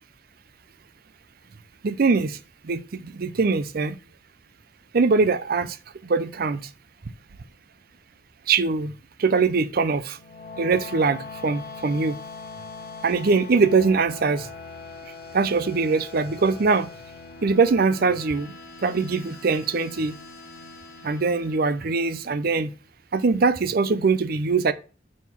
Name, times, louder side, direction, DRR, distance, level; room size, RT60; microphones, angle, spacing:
voice 1, 1.8-2.4 2.6-4.0 4.9-5.8 6.0-6.7 8.5-8.9 9.2-10.2 10.6-12.2 13.0-14.5 15.3-16.9 17.4-18.5 18.8-20.2 21.0-22.7 23.1-24.7, right 4 dB, 50° right, 0.5 m, -22 dB
sound 1, 10.1-22.4, left 4 dB, 55° left, 0.9 m, -41 dB
6.3 x 3.7 x 5.9 m
head